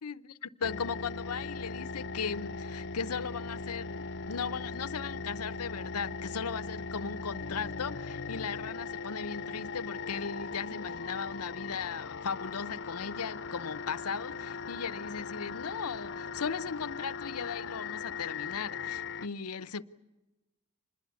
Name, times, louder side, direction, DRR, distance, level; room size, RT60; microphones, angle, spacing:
voice 1, 0.0-19.8, left 6 dB, 85° left, 0.8 m, -37 dB
sound 1, 0.6-19.3, left 4 dB, 55° left, 0.8 m, -39 dB
26.0 x 21.0 x 8.3 m
head